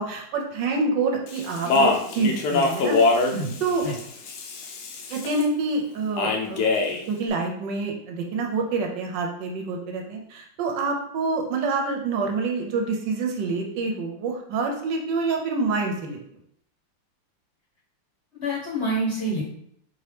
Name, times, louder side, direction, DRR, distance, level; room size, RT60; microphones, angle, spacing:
voice 1, 0.0-3.0 3.6-3.8 5.1-6.6 7.1-16.2, right 3 dB, 75° right, 2 dB, 1.3 m, -27 dB
Speech, 1.3-5.4 6.2-7.0, left 3 dB, 70° left, 1.0 m, -24 dB
voice 2, 3.3-3.9 18.4-19.4, right 1 dB, 45° left, -6 dB, 1.0 m, -27 dB
4.4 x 2.8 x 3.3 m, 0.69 s
omnidirectional pair, 2.1 m